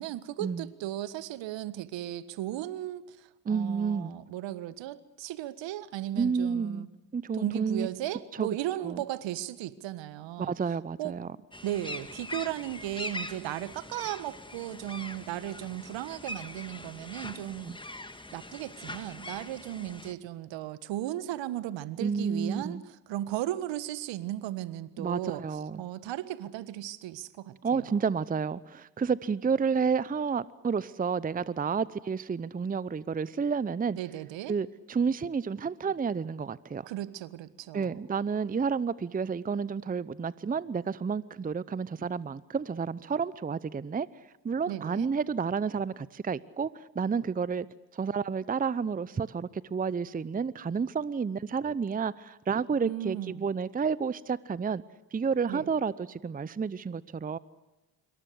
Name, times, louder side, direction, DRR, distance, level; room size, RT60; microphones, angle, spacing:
voice 1, 0.0-6.9 7.3-10.5 11.0-11.2 11.6-17.7 18.3-27.9 33.9-34.5 36.9-38.0 44.7-45.1 52.8-53.5 55.5-55.7, right 13 dB, 60° right, 16 dB, 1.6 m, -36 dB
voice 2, 3.5-4.2 6.2-6.9 7.1-7.9 8.4-8.5 8.8-9.0 10.4-11.3 17.6-17.8 22.0-22.8 25.0-25.8 27.6-34.0 34.5-36.9 37.7-44.1 44.4-47.7 47.9-54.8 55.1-57.4, right 6 dB, 15° right, 19 dB, 0.8 m, -30 dB
sound 1, 11.5-20.1, left 2 dB, 10° left, 2.0 m, -42 dB
26.5 x 24.0 x 6.5 m, 1.1 s
hypercardioid pair, 55°, 50 cm